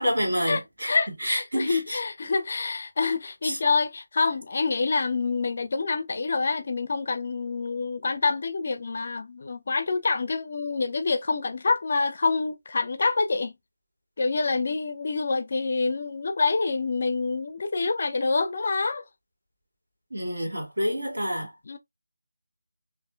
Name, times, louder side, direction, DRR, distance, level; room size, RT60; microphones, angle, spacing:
voice 1, 0.0-1.8 3.4-3.6 20.1-21.5, equal, 65° right, 2.0 m, -28 dB
voice 2, 0.9-13.5 14.2-19.0 21.7-21.8, left 4 dB, 40° left, 0.4 m, -26 dB
4.1 x 2.7 x 2.2 m
figure-of-eight pair, 160°, 0 cm